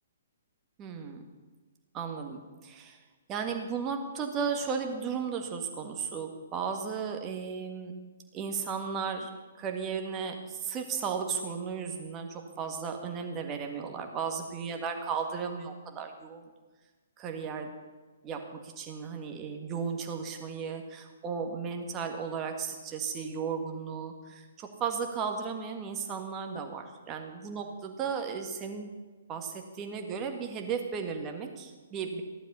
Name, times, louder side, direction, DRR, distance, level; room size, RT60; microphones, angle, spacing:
voice 1, 0.8-1.2 1.9-3.0 3.3-7.9 8.3-9.3 9.6-16.4 17.2-17.7 18.2-28.9 29.3-32.2, right 6 dB, 20° right, 3 dB, 1.8 m, -35 dB
15.0 x 11.0 x 5.6 m, 1.3 s
figure-of-eight pair, 125°, 0 cm